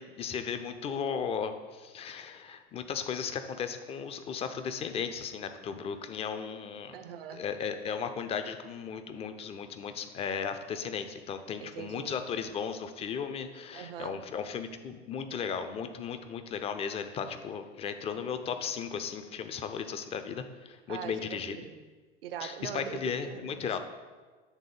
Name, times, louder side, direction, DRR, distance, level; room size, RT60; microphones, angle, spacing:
voice 1, 0.0-6.9 7.3-21.6 22.4-23.8, left 6 dB, 20° left, 9 dB, 0.4 m, -36 dB
voice 2, 6.9-7.4 11.6-12.2 13.7-14.2 20.9-21.8 22.2-23.8, right 9 dB, 65° right, 10 dB, 0.6 m, -42 dB
7.4 x 3.6 x 5.1 m, 1.4 s
figure-of-eight pair, 75°, 32 cm